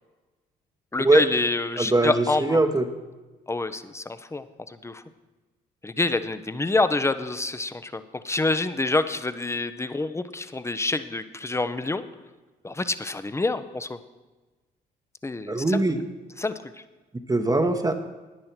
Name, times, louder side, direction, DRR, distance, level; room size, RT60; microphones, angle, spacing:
voice 1, 0.9-2.6 3.5-5.0 5.8-12.1 12.6-14.0 15.2-15.8 16.4-16.5, left 2 dB, 15° left, 12 dB, 0.7 m, -27 dB
voice 2, 1.8-2.9 15.5-16.0 17.3-17.9, right 2 dB, 20° right, 5 dB, 1.0 m, -21 dB
10.5 x 9.9 x 4.5 m, 1.2 s
hypercardioid pair, 50°, 20 cm